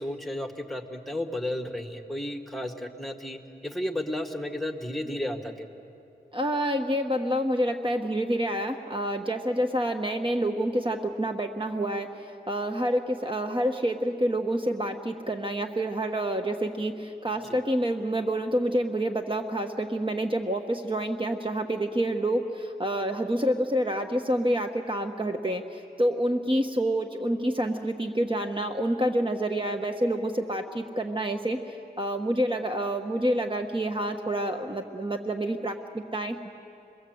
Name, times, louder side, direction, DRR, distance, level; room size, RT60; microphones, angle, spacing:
voice 1, 0.0-5.7 17.4-17.6, left 1 dB, ahead, 6 dB, 1.9 m, -33 dB
voice 2, 6.3-36.5, right 1 dB, 30° right, 4 dB, 1.3 m, -28 dB
28.0 x 21.5 x 7.9 m, 2.7 s
cardioid pair, 50°, 17 cm